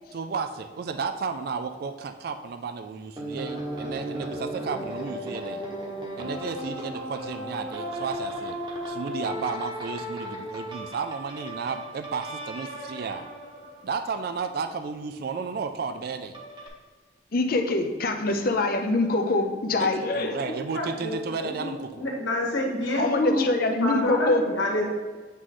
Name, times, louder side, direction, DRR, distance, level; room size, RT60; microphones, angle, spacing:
voice 1, 0.1-5.6 6.2-8.6 8.9-13.3 13.8-16.3 19.8-22.0, right 5 dB, 55° right, 9 dB, 0.3 m, -33 dB
sound 1, 3.2-14.5 16.3-16.7, equal, 25° right, 1.0 m, -36 dB
voice 2, 17.3-20.3 23.0-24.4, left 2 dB, 50° left, 5 dB, 0.6 m, -24 dB
voice 3, 20.2-24.8, left 1 dB, 80° left, -1 dB, 1.6 m, -28 dB
8.2 x 3.1 x 3.8 m, 1.4 s
head